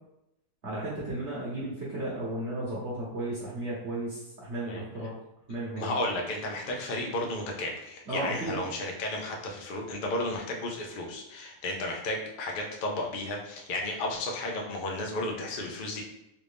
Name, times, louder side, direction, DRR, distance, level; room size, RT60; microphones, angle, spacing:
voice 1, 0.6-5.1 5.5-5.9 8.1-8.6, right 1 dB, 50° right, -7 dB, 1.1 m, -34 dB
voice 2, 5.8-16.0, left 1 dB, 90° left, 0 dB, 0.4 m, -33 dB
3.4 x 2.5 x 3.3 m, 0.85 s
omnidirectional pair, 1.7 m